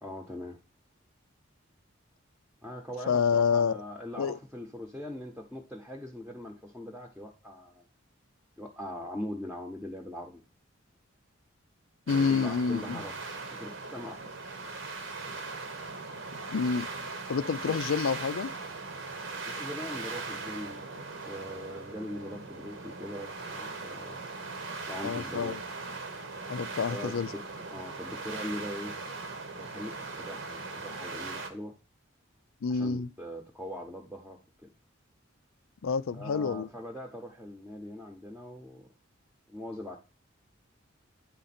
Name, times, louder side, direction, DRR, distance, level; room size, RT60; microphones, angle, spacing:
voice 1, 0.0-0.6 2.6-7.8 8.6-10.4 12.1-13.2 13.5-14.5 17.6-17.8 19.4-24.2 24.9-25.6 26.9-27.4 27.7-29.0 29.6-31.8 32.7-34.7 36.1-38.9 39.5-40.0, left 1 dB, 5° right, 0.8 m, -41 dB
voice 2, 3.1-3.8 4.2-4.4 12.1-13.0 16.5-16.9 17.3-18.5 25.0-25.6 26.5-27.3 32.6-33.1 35.8-36.7, left 5 dB, 80° left, 0.4 m, -28 dB
sound 1, 12.1-31.5, right 3 dB, 70° right, 1.1 m, -39 dB
9.3 x 3.8 x 4.2 m
head